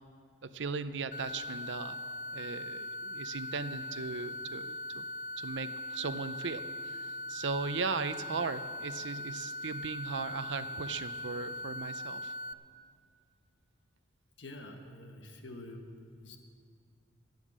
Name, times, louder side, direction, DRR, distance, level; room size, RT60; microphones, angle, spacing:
voice 1, 0.4-2.0 2.3-5.0 5.4-12.3, right 4 dB, 70° right, 12 dB, 0.6 m, -38 dB
sound 1, 1.1-12.5, left 1 dB, 40° left, 0.4 m, -40 dB
voice 2, 14.4-16.0 16.2-16.4, left 1 dB, 70° left, 4 dB, 1.4 m, -47 dB
13.5 x 9.2 x 7.4 m, 2.1 s
head